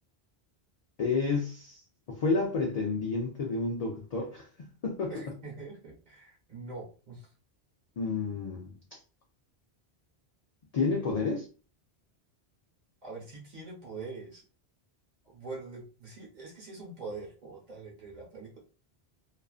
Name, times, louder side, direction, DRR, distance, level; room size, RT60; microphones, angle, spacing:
voice 1, 1.0-1.8 2.1-4.5 4.8-5.1 8.0-9.0 10.7-11.4, left 4 dB, 55° left, 0.4 m, -30 dB
voice 2, 5.1-7.3 13.0-14.4 15.2-18.6, right 3 dB, 45° right, 1.1 m, -44 dB
2.4 x 2.4 x 2.3 m
omnidirectional pair, 1.1 m